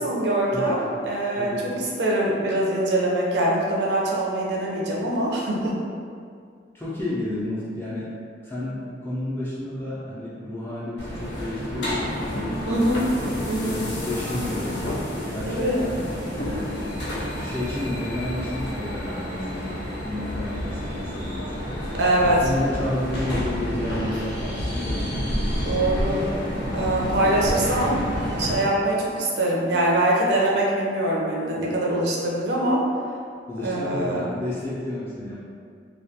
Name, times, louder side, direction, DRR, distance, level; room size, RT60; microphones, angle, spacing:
voice 1, 0.0-5.7 12.7-13.0 13.5-13.8 15.5-15.8 22.0-22.4 25.6-26.2 26.7-28.0 28.4-32.8 33.6-34.4, right 1 dB, 65° right, -3 dB, 0.5 m, -23 dB
voice 2, 0.5-1.0 1.4-1.7 6.7-8.1 8.4-12.9 13.6-16.0 16.4-16.8 17.4-21.8 22.2-25.1 33.5-35.4, left 1 dB, 15° left, -9 dB, 0.3 m, -31 dB
sound 1, 11.0-28.6, equal, 70° left, 0.5 m, -29 dB
2.2 x 2.1 x 2.7 m, 2.2 s
head